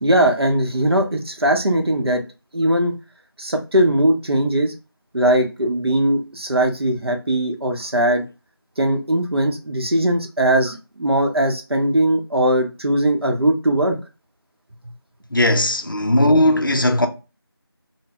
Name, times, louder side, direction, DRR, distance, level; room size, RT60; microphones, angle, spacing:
voice 1, 0.0-2.2 2.5-2.9 3.4-4.7 5.1-8.2 8.8-14.0, right 1 dB, 75° right, 0.6 m, -19 dB
voice 2, 15.3-17.1, left 1 dB, 55° left, 0.4 m, -17 dB
2.1 x 2.0 x 3.4 m
figure-of-eight pair, 175°, 13 cm